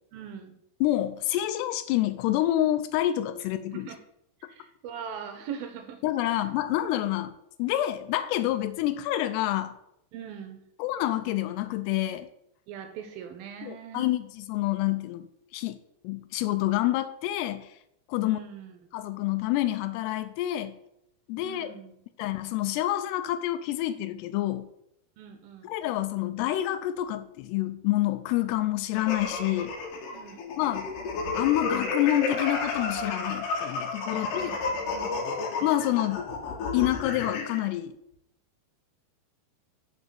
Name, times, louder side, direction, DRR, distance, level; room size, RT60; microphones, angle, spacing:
voice 1, 0.1-0.6 3.7-4.0 4.4-6.4 10.1-10.6 12.7-14.0 18.2-18.8 21.4-22.0 25.2-25.7 30.1-30.4 34.1-35.2, right 7 dB, 75° right, 6 dB, 2.4 m, -41 dB
voice 2, 0.8-3.9 6.0-7.3 7.6-9.8 10.8-12.3 13.6-15.3 15.5-15.8 16.0-17.7 18.1-18.4 18.9-20.8 21.3-21.7 22.2-24.7 25.6-29.7 30.6-30.9 31.3-34.5 35.6-36.2 36.7-37.9, left 14 dB, 90° left, 11 dB, 2.7 m, -27 dB
sound 1, 29.0-37.6, left 4 dB, 60° left, 2.7 m, -31 dB
6.3 x 6.1 x 6.7 m, 0.77 s
omnidirectional pair, 4.8 m